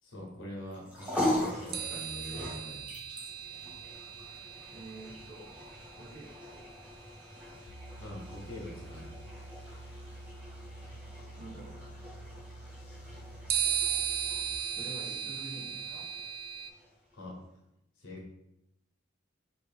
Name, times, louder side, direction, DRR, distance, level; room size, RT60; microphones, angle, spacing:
voice 1, 0.0-2.9 8.0-9.1 17.1-17.4 18.0-18.3, left 1 dB, 80° left, -2 dB, 1.1 m, -44 dB
sound 1, 0.7-17.2, left 1 dB, 5° right, 0.9 m, -41 dB
sound 2, 1.7-7.4 8.7-8.8 13.5-16.7, right 9 dB, 50° right, 0.3 m, -36 dB
voice 2, 4.7-5.6 5.9-6.6 11.4-11.7 14.8-16.0, right 1 dB, 65° right, -11 dB, 1.3 m, -47 dB
sound 3, 7.7-14.6, right 2 dB, 55° left, 0.3 m, -48 dB
3.2 x 2.6 x 3.3 m, 0.86 s
head